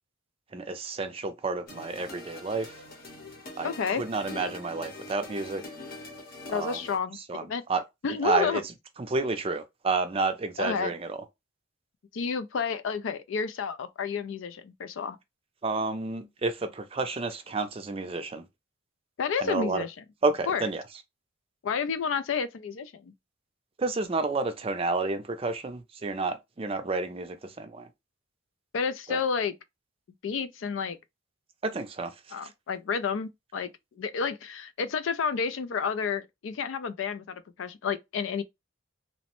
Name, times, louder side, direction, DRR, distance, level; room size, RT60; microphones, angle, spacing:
voice 1, 0.5-2.7 3.6-5.6 6.5-6.8 7.3-7.8 8.2-8.6 9.1-11.2 15.6-18.5 19.4-19.8 20.2-20.8 23.8-27.9 29.1-29.2 31.6-32.1, right 3 dB, 30° right, 0.4 m, -30 dB
sound 1, 1.7-7.0, left 2 dB, 50° left, 0.8 m, -43 dB
voice 2, 3.6-4.0 6.5-7.6 8.0-8.6 10.6-10.9 12.1-15.2 19.2-19.9 20.5-20.6 21.6-23.1 28.7-29.5 30.2-31.0 32.3-33.7 34.0-38.4, left 6 dB, 80° left, 0.4 m, -30 dB
3.0 x 2.0 x 2.9 m
head